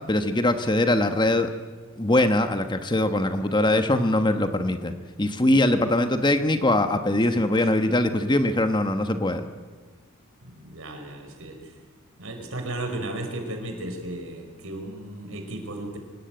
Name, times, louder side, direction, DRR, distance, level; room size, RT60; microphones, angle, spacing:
voice 1, 0.1-1.5 2.0-4.9 5.2-9.4, left 1 dB, 20° left, 8 dB, 1.3 m, -22 dB
voice 2, 7.3-7.7 10.4-11.7 12.2-16.0, right 1 dB, 70° right, 5 dB, 5.0 m, -35 dB
26.0 x 19.0 x 9.1 m, 1.4 s
head